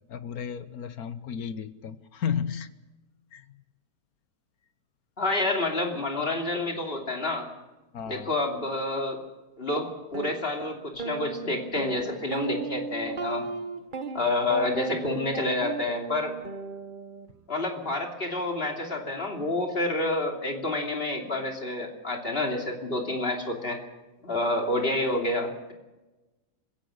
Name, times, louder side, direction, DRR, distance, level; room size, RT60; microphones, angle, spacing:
voice 1, 0.1-2.7 3.3-3.5 7.9-8.3, left 8 dB, 65° left, 12 dB, 1.4 m, -33 dB
voice 2, 5.2-7.5 8.1-9.2 9.6-13.5 14.1-16.3 17.5-23.8 24.2-25.7, left 2 dB, 35° left, 1 dB, 3.1 m, -28 dB
sound 1, 10.1-10.3 11.0-17.3, right 4 dB, 35° right, 1.0 m, -36 dB
26.0 x 16.5 x 6.5 m, 1.1 s
omnidirectional pair, 1.8 m